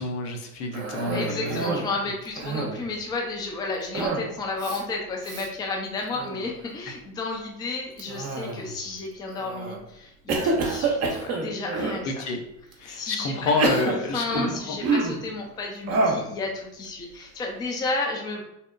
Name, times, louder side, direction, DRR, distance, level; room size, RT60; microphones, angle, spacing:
voice 1, 0.0-1.6 6.9-7.0 12.0-12.4 12.8-14.8, left 3 dB, 80° left, 3 dB, 0.7 m, -28 dB
Cough, 0.7-1.9 2.3-2.9 3.9-4.3 4.6-4.8 5.2-5.5 6.0-6.5 8.0-8.8 9.4-9.8 10.3-12.0 12.7-12.8 13.4-15.3 15.9-16.3, right 3 dB, 35° right, 0.6 m, -27 dB
voice 2, 1.1-12.3 12.9-13.5 13.9-18.5, left 3 dB, 10° left, 0 dB, 0.3 m, -32 dB
2.8 x 2.0 x 2.4 m, 0.80 s
hypercardioid pair, 80°, 44 cm